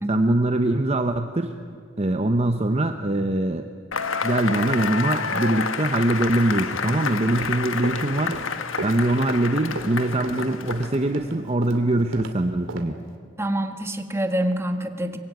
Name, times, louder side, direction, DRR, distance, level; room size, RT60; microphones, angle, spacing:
voice 1, 0.1-1.5 2.0-3.7 4.2-8.4 8.8-13.0, right 1 dB, 30° right, 6 dB, 0.9 m, -23 dB
Cheering / Applause / Crowd, 3.9-11.2, left 5 dB, 80° left, 1.4 m, -29 dB
Run, 7.2-12.3 12.7-12.8, right 2 dB, 80° right, 2.3 m, -35 dB
voice 2, 13.4-15.2, right 1 dB, 15° right, 6 dB, 1.6 m, -26 dB
24.5 x 21.5 x 9.5 m, 2.1 s
head